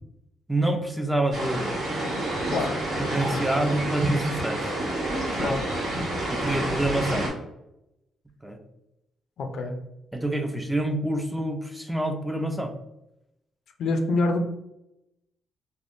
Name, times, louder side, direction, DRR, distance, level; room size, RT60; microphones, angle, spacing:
voice 1, 0.5-1.8 3.0-4.7 5.3-5.5 6.3-7.3 8.4-8.6 10.1-12.7, right 1 dB, 5° right, 5 dB, 0.4 m, -27 dB
sound 1, 1.3-7.3, right 1 dB, 75° right, 1.4 m, -28 dB
voice 2, 9.4-9.8 13.8-14.4, left 2 dB, 70° left, 5 dB, 0.4 m, -25 dB
3.3 x 2.1 x 2.5 m, 0.88 s
cardioid pair, 90°, 0 cm